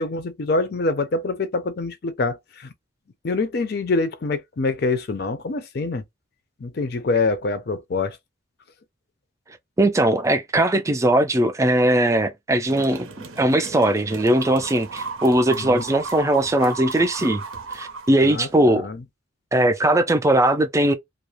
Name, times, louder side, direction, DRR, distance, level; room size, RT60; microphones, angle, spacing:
voice 1, 0.0-2.7 3.2-6.0 6.6-8.2 15.5-15.8 18.2-18.5 18.7-19.0, left 3 dB, 50° left, 0.5 m, -25 dB
voice 2, 9.8-13.1 13.4-17.4 17.7-18.9 19.5-20.9, right 1 dB, 15° right, 0.3 m, -19 dB
sound 1, 12.7-18.7, right 4 dB, 85° right, 0.6 m, -35 dB
2.4 x 2.0 x 2.9 m
head